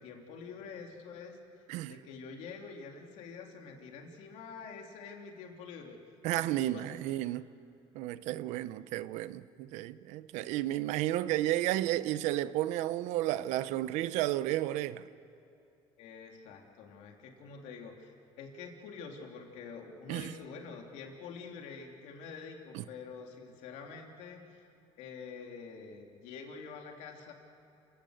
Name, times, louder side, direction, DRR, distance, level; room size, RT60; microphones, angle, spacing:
voice 1, 0.0-1.4 1.9-6.0 6.3-7.2 16.0-24.6 25.0-27.3, left 5 dB, 85° left, 3.3 m, -47 dB
voice 2, 6.2-7.4 7.9-15.1 20.1-20.3 22.7-22.8, right 14 dB, 85° right, 0.7 m, -32 dB
29.0 x 18.0 x 6.6 m
cardioid pair, 105°, 12 cm